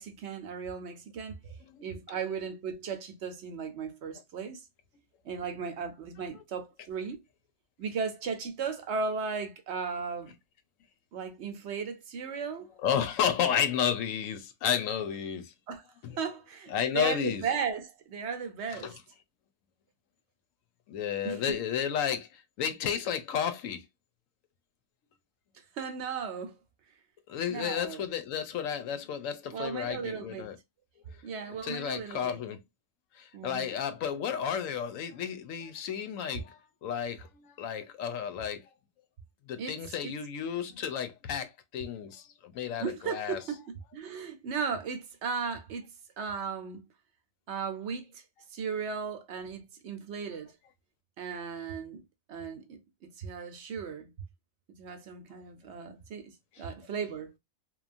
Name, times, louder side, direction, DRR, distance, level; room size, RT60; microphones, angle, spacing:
voice 1, 0.0-1.4 1.8-4.6 5.2-7.2 7.8-10.3 11.1-12.7 15.7-15.8 16.2-19.0 21.2-21.4 25.7-26.6 27.5-28.0 29.5-30.5 31.2-32.4 33.3-33.8 39.6-39.8 40.0-40.1 42.8-45.9 46.2-46.8 47.5-48.2 48.5-50.5 51.2-52.0 52.3-52.8 53.2-54.1 54.7-57.3, right 6 dB, 65° right, 0.8 m, -36 dB
voice 2, 1.6-2.2 12.8-15.5 16.0-16.2 16.7-17.5 18.7-18.9 20.9-23.8 27.3-30.6 31.3-32.6 33.1-38.6 39.5-43.4 56.5-56.6, left 8 dB, 80° left, 1.0 m, -32 dB
2.9 x 2.3 x 2.4 m
omnidirectional pair, 1.4 m